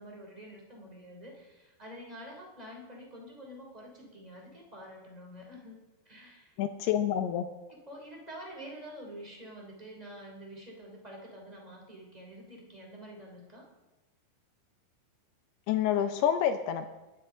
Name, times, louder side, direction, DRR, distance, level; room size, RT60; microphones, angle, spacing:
voice 1, 0.0-5.8 6.0-6.6 7.7-13.7, equal, 10° right, -1 dB, 2.2 m, -47 dB
voice 2, 6.6-7.5 15.7-16.9, left 10 dB, 80° left, 8 dB, 2.4 m, -28 dB
21.5 x 11.5 x 3.8 m, 1.1 s
omnidirectional pair, 5.2 m